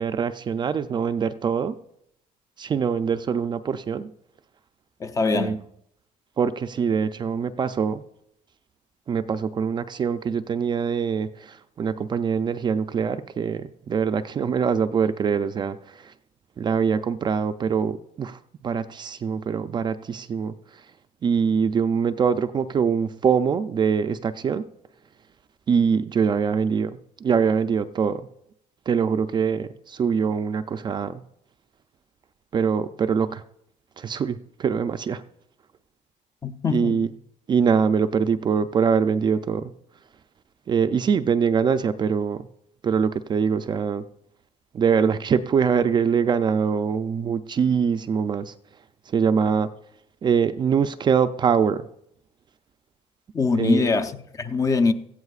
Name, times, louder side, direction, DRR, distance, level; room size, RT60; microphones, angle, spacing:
voice 1, 0.0-1.8 2.6-4.1 5.3-5.6 6.4-8.0 9.1-16.1 16.6-20.5 21.2-24.6 25.7-28.3 28.9-31.2 32.5-33.4 34.0-35.2 36.7-37.1 37.5-39.7 40.7-42.5 42.8-44.0 44.7-48.5 49.1-49.7 50.2-51.9 53.5-53.9, right 6 dB, 30° right, 0.4 m, -23 dB
voice 2, 5.0-5.6 36.4-37.0 53.3-54.9, left 4 dB, 25° left, 0.6 m, -23 dB
17.5 x 14.5 x 2.4 m
cardioid pair, 140°, 14 cm